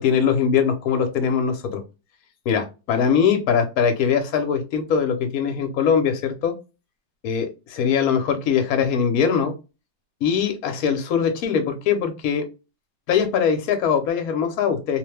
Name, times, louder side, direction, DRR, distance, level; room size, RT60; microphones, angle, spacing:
voice 1, 0.0-1.8 2.5-6.5 7.2-9.5 10.2-12.5 13.1-15.0, left 7 dB, 65° left, 5 dB, 1.0 m, -21 dB
2.9 x 2.2 x 3.2 m, 0.29 s
omnidirectional pair, 2.0 m